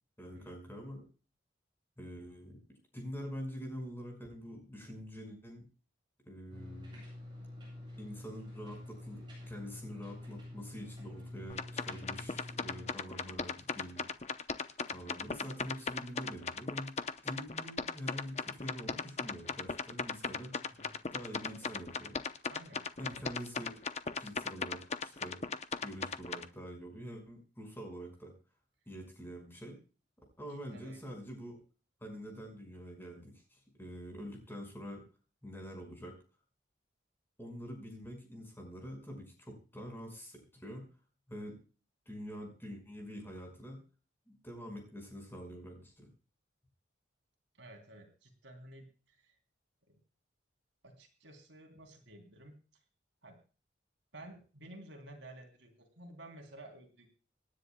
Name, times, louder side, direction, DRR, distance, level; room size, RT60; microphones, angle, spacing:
voice 1, 0.2-1.0 2.0-2.6 2.9-5.6 6.2-7.0 8.0-14.4 14.9-16.9 17.2-20.5 21.1-22.2 23.0-23.8 24.2-25.4 25.8-28.3 28.9-29.8 30.4-31.6 32.0-35.0 35.4-36.1 37.4-40.8 41.3-41.6 42.1-43.8 44.3-46.1, equal, 10° left, 2 dB, 5.6 m, -45 dB
sound 1, 6.5-12.9, left 1 dB, 25° right, 7.8 m, -47 dB
sound 2, 11.5-26.4, left 5 dB, 35° left, 0.8 m, -37 dB
voice 2, 22.5-23.2 30.7-31.1 47.6-49.3 49.9-50.0 50.8-52.6 53.2-53.4 54.1-57.1, right 1 dB, 70° right, 4 dB, 3.4 m, -53 dB
27.0 x 10.5 x 2.3 m, 0.37 s
head